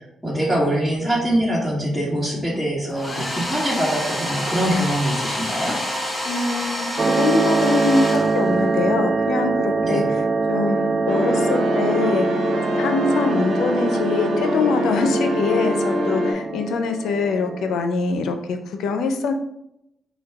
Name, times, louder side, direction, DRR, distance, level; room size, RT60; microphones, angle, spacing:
voice 1, 0.2-5.8 9.8-10.1, equal, 5° right, -6 dB, 1.7 m, -23 dB
Domestic sounds home sounds, 2.9-8.8, left 1 dB, 25° left, 1.0 m, -28 dB
voice 2, 6.2-12.3 12.8-19.3, left 4 dB, 80° left, 6 dB, 0.5 m, -24 dB
sound 1, 7.0-17.8, right 4 dB, 40° right, 0.3 m, -24 dB
sound 2, 11.1-16.3, equal, 80° right, 1.2 m, -24 dB
4.5 x 2.3 x 4.6 m, 0.83 s
cardioid pair, 75°, 0 cm